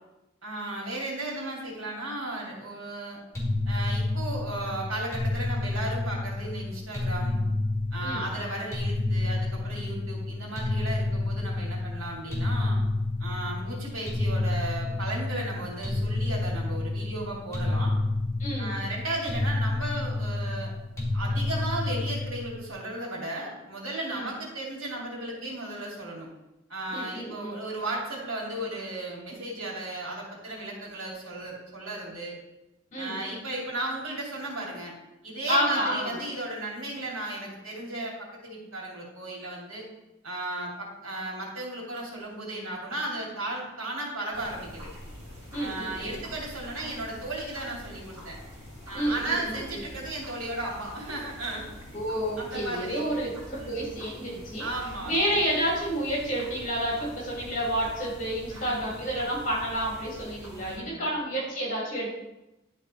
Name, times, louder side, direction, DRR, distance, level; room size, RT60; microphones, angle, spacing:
voice 1, 0.4-3.2 3.7-7.4 7.9-12.8 13.2-17.9 18.6-20.7 21.1-26.3 26.7-32.3 33.0-34.9 35.2-39.9 40.2-44.9 45.6-48.4 48.8-51.7 52.4-53.0 53.5-53.9 54.6-55.3 58.5-58.9 60.6-61.1, right 1 dB, 85° right, -3 dB, 2.7 m, -35 dB
sound 1, 3.3-22.7, left 2 dB, 15° left, 2.4 m, -29 dB
voice 2, 18.4-18.7 24.1-24.3 26.9-27.6 32.9-33.2 35.5-36.2 45.5-46.2 48.9-49.8 51.9-54.7 55.0-62.1, equal, 35° left, -5 dB, 3.1 m, -30 dB
sound 2, 44.3-60.8, equal, 15° right, 3.2 m, -45 dB
11.0 x 4.2 x 4.3 m, 0.96 s
head